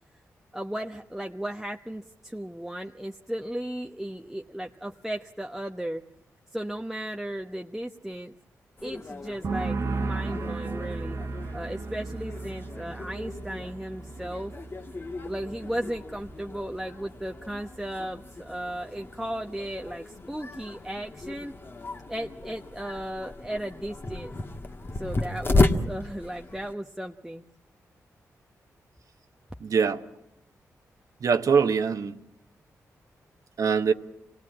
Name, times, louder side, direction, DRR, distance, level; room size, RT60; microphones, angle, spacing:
voice 1, 0.5-6.0 6.5-8.3 8.8-11.2 11.5-14.5 15.2-21.5 22.1-24.3 24.9-27.4, right 1 dB, 5° right, 1.0 m, -35 dB
sound 1, 8.8-26.7, left 2 dB, 40° left, 1.8 m, -34 dB
sound 2, 9.4-16.9 17.2-17.7, right 3 dB, 55° right, 1.5 m, -35 dB
voice 2, 29.6-30.0 31.2-32.1 33.6-33.9, right 6 dB, 70° right, 1.2 m, -23 dB
25.5 x 18.5 x 8.7 m
cardioid pair, 65°, 6 cm